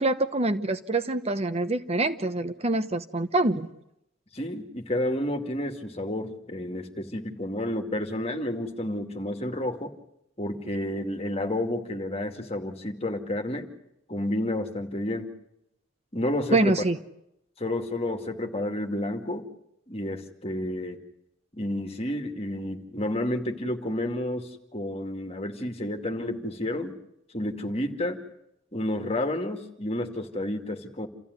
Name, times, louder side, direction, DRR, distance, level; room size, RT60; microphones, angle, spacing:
voice 1, 0.0-3.7 16.5-17.0, right 2 dB, 35° right, 10 dB, 1.0 m, -25 dB
voice 2, 4.3-9.9 10.4-13.7 14.1-15.3 16.1-16.8 17.6-19.5 19.9-21.0 21.5-27.0 27.3-28.2 28.7-31.1, left 1 dB, 30° left, 5 dB, 2.4 m, -30 dB
29.0 x 14.5 x 9.7 m, 0.82 s
head